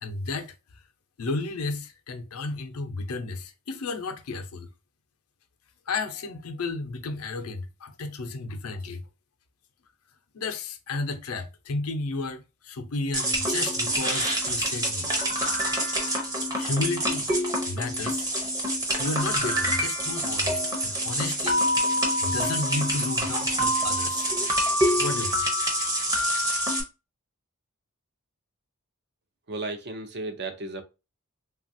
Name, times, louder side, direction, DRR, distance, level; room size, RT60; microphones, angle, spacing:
voice 1, 0.0-0.5 1.2-4.7 5.9-9.0 10.3-15.1 16.5-17.3 17.7-18.3 19.0-21.6 22.2-24.3 25.0-25.5, left 3 dB, 90° left, 0.6 m, -32 dB
sound 1, 13.1-26.8, equal, 15° right, 0.7 m, -26 dB
voice 2, 29.5-30.8, right 2 dB, 50° right, 0.6 m, -34 dB
3.2 x 2.4 x 2.6 m
head